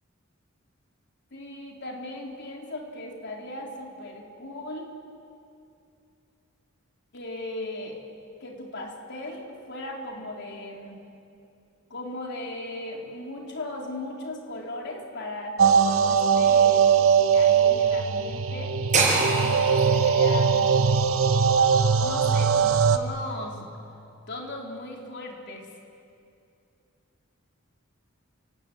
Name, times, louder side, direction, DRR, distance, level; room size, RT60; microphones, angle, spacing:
voice 1, 1.3-4.9 7.1-8.0 8.4-11.0 11.9-17.1 17.3-18.8 19.3-20.9 21.9-23.7 24.3-25.7, left 2 dB, 60° left, 0 dB, 3.9 m, -37 dB
sound 1, 15.6-23.0, right 6 dB, 85° right, 1.2 m, -21 dB
sound 2, 18.9-23.0, right 3 dB, 35° right, 6.7 m, -28 dB
29.5 x 18.0 x 8.8 m, 2.6 s
head